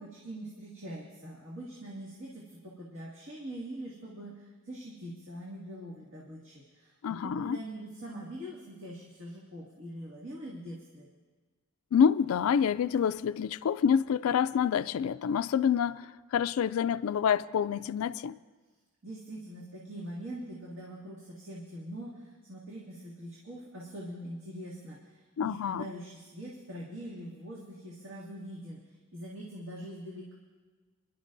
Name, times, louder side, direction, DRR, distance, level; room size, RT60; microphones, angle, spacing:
voice 1, 0.0-11.1 19.0-28.8 29.1-30.3, right 1 dB, 60° right, 2.1 m, -43 dB
voice 2, 7.0-7.6 11.9-18.3 25.4-25.9, left 7 dB, 70° left, 0.3 m, -27 dB
26.5 x 11.5 x 2.6 m
head